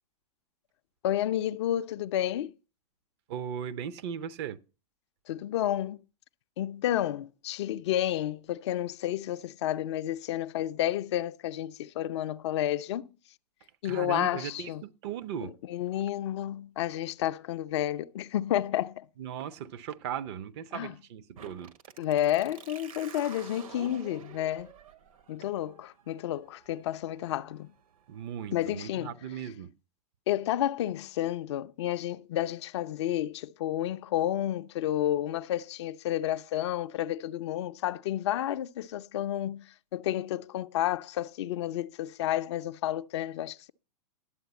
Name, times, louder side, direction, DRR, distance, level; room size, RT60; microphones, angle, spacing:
voice 1, 1.0-2.5 5.3-6.0 6.6-13.1 13.8-14.8 15.7-19.0 20.7-20.9 22.0-24.7 25.3-27.7 28.5-29.1 30.3-39.6 39.9-43.7, left 12 dB, 45° left, 0.4 m, -31 dB
voice 2, 3.3-4.6 13.8-15.6 15.9-16.0 19.2-21.7 28.1-29.7, right 8 dB, 40° right, 0.6 m, -37 dB
sound 1, 21.4-28.9, right 7 dB, 60° right, 1.1 m, -51 dB
11.5 x 7.9 x 4.1 m
figure-of-eight pair, 105°, 20 cm